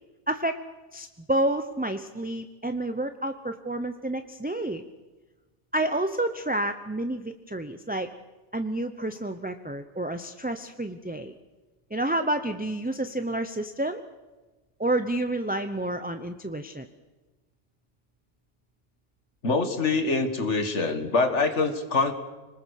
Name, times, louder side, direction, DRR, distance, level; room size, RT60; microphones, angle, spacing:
voice 1, 0.3-0.6 0.9-4.8 5.7-8.1 8.5-11.3 11.9-14.0 14.8-16.9, right 1 dB, 10° right, 7 dB, 0.7 m, -29 dB
voice 2, 19.4-22.1, left 3 dB, 75° left, 7 dB, 2.2 m, -24 dB
26.5 x 20.0 x 6.5 m, 1.2 s
omnidirectional pair, 1.2 m